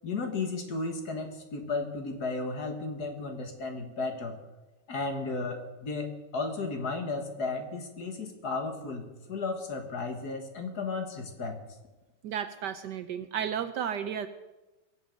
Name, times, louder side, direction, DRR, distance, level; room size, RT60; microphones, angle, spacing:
voice 1, 0.0-4.3 4.9-11.5, left 3 dB, 50° left, 5 dB, 2.0 m, -34 dB
voice 2, 12.2-14.3, right 8 dB, 70° right, 10 dB, 1.1 m, -33 dB
22.5 x 7.8 x 5.2 m, 1.1 s
omnidirectional pair, 2.2 m